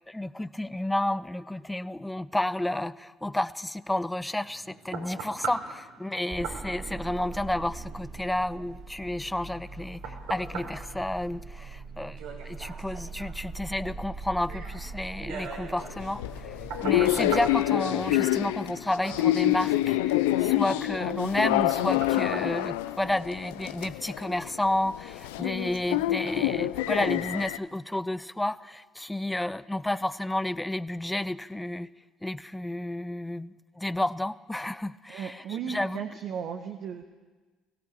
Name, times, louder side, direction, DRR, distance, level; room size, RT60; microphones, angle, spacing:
voice 1, 0.1-16.6 16.8-31.9 32.2-36.0, left 1 dB, 10° left, 17 dB, 0.7 m, -31 dB
knocking on door, 4.2-23.5 24.0-24.1, right 5 dB, 75° right, 5.3 m, -43 dB
sound 1, 6.3-17.6, right 4 dB, 30° right, 1.5 m, -42 dB
sound 2, 15.8-27.6, left 15 dB, 80° left, 0.7 m, -27 dB
voice 2, 35.1-37.0, right 7 dB, 60° right, 5 dB, 1.5 m, -35 dB
22.5 x 16.5 x 8.8 m, 1.3 s
hypercardioid pair, 60°, 0 cm